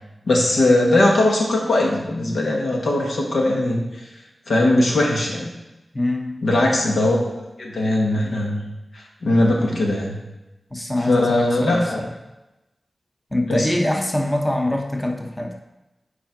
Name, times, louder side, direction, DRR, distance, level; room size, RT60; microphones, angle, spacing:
voice 1, 0.2-4.0 4.5-5.5 6.4-7.2 7.6-8.6 8.9-10.2 11.0-12.0 13.5-13.7, left 1 dB, 90° left, -1 dB, 1.4 m, -20 dB
voice 2, 5.9-6.4 10.7-12.1 13.3-15.6, left 1 dB, 15° left, 3 dB, 0.7 m, -24 dB
7.0 x 4.6 x 4.6 m, 0.99 s
wide cardioid pair, 105°, 0 cm